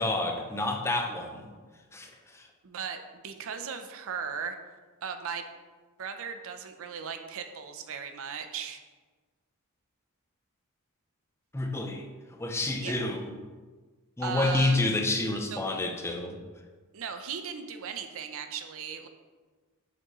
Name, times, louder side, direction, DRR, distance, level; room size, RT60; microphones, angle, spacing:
voice 1, 0.0-1.5 1.9-2.5 11.5-12.1 12.4-13.4 14.2-16.4, left 2 dB, 10° left, 3 dB, 0.5 m, -29 dB
voice 2, 2.6-4.6 5.0-5.5 6.0-8.8 12.8-13.0 14.2-14.8 15.5-15.6 16.9-19.1, right 6 dB, 65° right, 7 dB, 0.5 m, -37 dB
6.0 x 5.3 x 3.0 m, 1.4 s
head